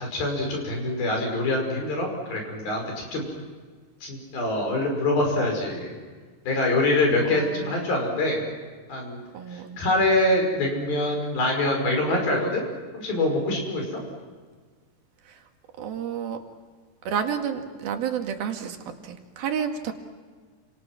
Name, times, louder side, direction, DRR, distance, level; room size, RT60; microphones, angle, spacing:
voice 1, 0.0-3.3 4.0-5.9 6.5-8.4 8.9-9.2 9.5-12.7 12.9-14.0, left 2 dB, 65° left, 2 dB, 7.6 m, -25 dB
voice 2, 7.2-7.8 9.3-9.8 15.3-15.4 15.8-16.4 17.1-19.9, right 8 dB, 70° right, 4 dB, 3.8 m, -30 dB
29.5 x 27.5 x 6.1 m, 1.5 s
omnidirectional pair, 4.6 m